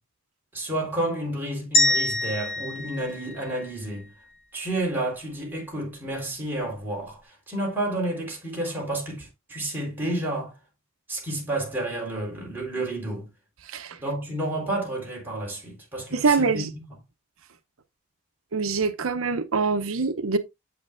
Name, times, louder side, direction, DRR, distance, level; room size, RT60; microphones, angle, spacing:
voice 1, 0.5-4.1 4.5-10.5 11.1-13.3 14.0-16.9, right 1 dB, 10° right, 3.8 m, -30 dB
sound 1, 1.7-4.0, left 1 dB, 30° left, 4.1 m, -25 dB
voice 2, 13.7-14.0 16.1-16.7 18.5-20.4, right 4 dB, 80° right, 0.7 m, -24 dB
8.5 x 7.8 x 2.5 m
head